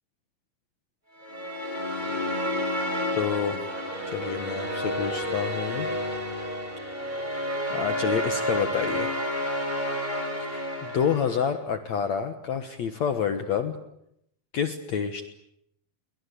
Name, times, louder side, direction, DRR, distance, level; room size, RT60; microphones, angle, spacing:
sound 1, 1.2-11.6, equal, 10° right, 6.7 m, -30 dB
voice 1, 3.2-3.6 4.1-5.9 7.7-9.2 10.4-13.8 14.5-15.3, left 7 dB, 60° left, 8 dB, 2.3 m, -28 dB
29.0 x 23.5 x 8.5 m, 0.77 s
omnidirectional pair, 4.3 m